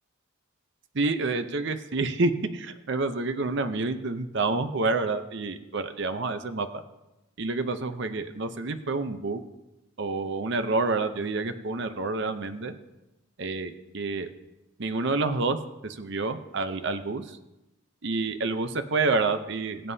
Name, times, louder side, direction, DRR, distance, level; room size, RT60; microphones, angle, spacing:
voice 1, 0.9-6.8 7.4-9.4 10.0-12.7 13.4-14.3 14.8-15.6 15.8-17.4 18.0-19.9, right 3 dB, 55° right, 9 dB, 0.7 m, -28 dB
22.0 x 7.6 x 2.8 m, 0.97 s
head